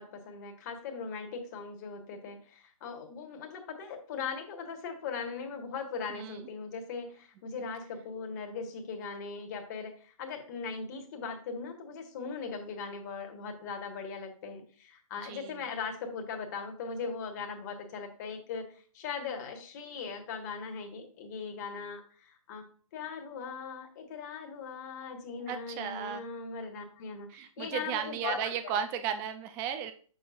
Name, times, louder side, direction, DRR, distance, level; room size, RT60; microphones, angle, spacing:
voice 1, 0.0-22.6 22.9-28.8, left 5 dB, 30° left, 3 dB, 1.5 m, -39 dB
voice 2, 6.1-6.4 15.2-15.6 25.5-26.2 27.3-29.9, right 8 dB, 15° right, 9 dB, 0.4 m, -35 dB
8.3 x 6.8 x 2.5 m, 0.42 s
figure-of-eight pair, 140°, 18 cm